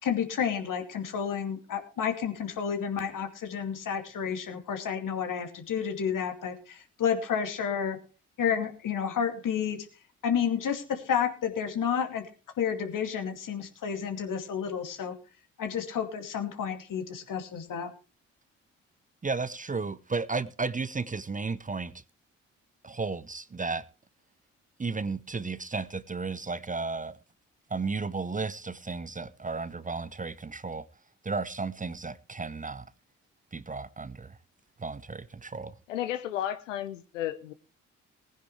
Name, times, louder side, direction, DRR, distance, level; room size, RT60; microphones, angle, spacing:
voice 1, 0.0-8.0 8.4-9.9 10.2-12.3 12.6-15.1 15.6-17.9, left 7 dB, 60° left, 2.6 m, -30 dB
voice 2, 19.2-21.9 22.8-23.9 24.8-27.2 27.7-30.9 31.2-32.9 33.5-34.4 34.8-35.8, right 4 dB, 20° right, 0.8 m, -33 dB
voice 3, 35.9-37.5, left 11 dB, 90° left, 0.6 m, -33 dB
19.5 x 10.0 x 3.3 m
hypercardioid pair, 40°, 37 cm